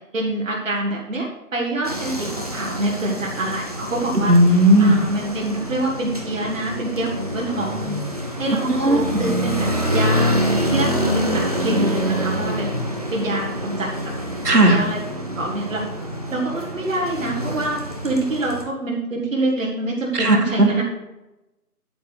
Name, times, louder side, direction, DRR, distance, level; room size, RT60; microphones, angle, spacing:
voice 1, 0.1-4.3 4.8-7.9 8.4-10.4 10.7-12.7 13.1-13.9 14.6-15.0 15.3-15.8 16.3-20.8, right 1 dB, 55° right, -2 dB, 1.6 m, -26 dB
sound 1, 1.8-18.6, equal, 25° right, 0.8 m, -26 dB
voice 2, 4.3-5.0 8.8-9.0 14.4-14.8 20.1-20.8, right 1 dB, 75° right, 2 dB, 2.2 m, -15 dB
9.2 x 4.5 x 6.3 m, 0.98 s
figure-of-eight pair, 165°, 47 cm